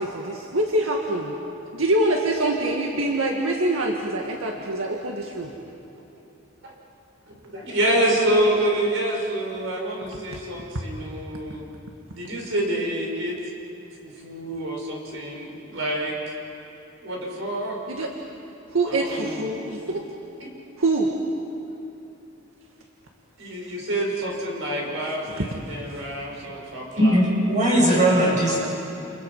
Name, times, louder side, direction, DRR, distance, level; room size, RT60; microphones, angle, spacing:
voice 1, 0.0-1.3 1.7-5.5 10.3-10.5 17.9-18.1 18.7-20.0 20.8-21.1 25.0-25.5 26.2-26.5, right 2 dB, 90° right, 0 dB, 2.0 m, -25 dB
voice 2, 7.5-11.6 12.1-13.4 14.0-16.1 17.0-17.8 18.9-19.5 23.4-27.2 28.0-28.3, right 1 dB, 70° right, -1 dB, 6.1 m, -27 dB
voice 3, 27.0-28.6, right 1 dB, 35° right, -3 dB, 7.7 m, -19 dB
29.5 x 29.5 x 5.7 m, 2.8 s
head